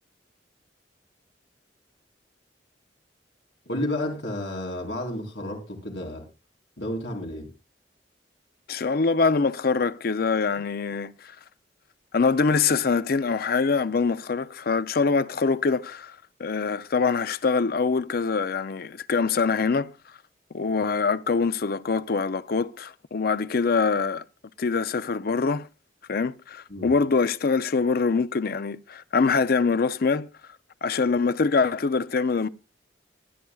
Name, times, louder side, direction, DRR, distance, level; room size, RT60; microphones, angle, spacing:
voice 1, 3.7-6.2 6.8-7.5 26.7-26.9, left 1 dB, 90° left, 4.1 m, -31 dB
voice 2, 8.7-11.4 12.1-19.9 20.5-24.2 24.6-25.7 26.1-30.3 30.8-32.5, left 4 dB, 60° left, 0.5 m, -24 dB
23.5 x 10.5 x 2.3 m
head